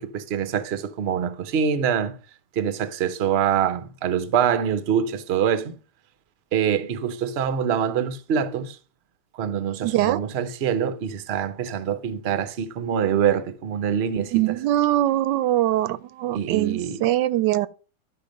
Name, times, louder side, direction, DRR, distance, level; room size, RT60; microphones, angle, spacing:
voice 1, 0.0-2.2 2.6-5.8 6.5-8.8 9.3-14.6 16.3-17.0, right 8 dB, 50° right, 0.8 m, -25 dB
voice 2, 9.8-10.2 14.3-17.7, right 14 dB, 90° right, 1.3 m, -22 dB
12.0 x 4.5 x 5.1 m
omnidirectional pair, 1.9 m